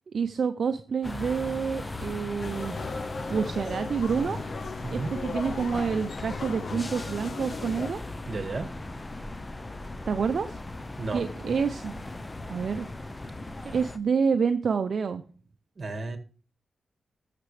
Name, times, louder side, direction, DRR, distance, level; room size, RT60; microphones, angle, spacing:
voice 1, 0.1-2.8 3.3-4.4 4.9-8.0 10.1-10.6 11.1-11.9 12.5-12.9 13.6-15.2, right 6 dB, 65° right, 9 dB, 0.6 m, -28 dB
sound 1, 1.0-14.0, left 2 dB, 20° left, 0.7 m, -38 dB
sound 2, 2.4-7.9, left 4 dB, 65° left, 0.7 m, -37 dB
voice 2, 8.3-8.7 11.0-11.2 15.8-16.2, right 3 dB, 45° right, 6 dB, 1.8 m, -32 dB
13.0 x 6.7 x 3.3 m, 0.39 s
cardioid pair, 85°, 0 cm